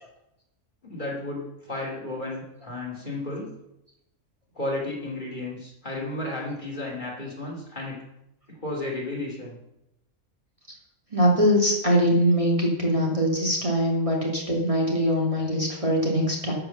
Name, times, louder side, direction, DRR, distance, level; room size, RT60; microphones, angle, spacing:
voice 1, 0.8-3.5 4.5-8.0 8.5-9.6, left 2 dB, 40° left, -3 dB, 2.8 m, -33 dB
voice 2, 11.1-16.5, equal, 25° right, -2 dB, 2.5 m, -22 dB
12.0 x 5.7 x 7.0 m, 0.84 s
omnidirectional pair, 1.3 m